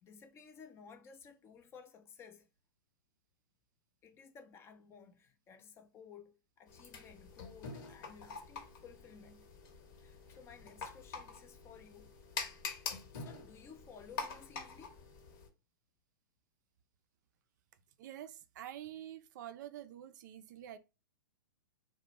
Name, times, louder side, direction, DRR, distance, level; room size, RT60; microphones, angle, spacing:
voice 1, 0.0-2.5 4.0-9.5 10.0-12.1 13.1-15.0, left 6 dB, 20° left, 0.4 m, -56 dB
sound 1, 6.7-15.5, left 5 dB, 55° left, 0.9 m, -46 dB
voice 2, 18.0-20.8, right 11 dB, 55° right, 0.4 m, -47 dB
2.5 x 2.1 x 2.9 m
hypercardioid pair, 120°, 12 cm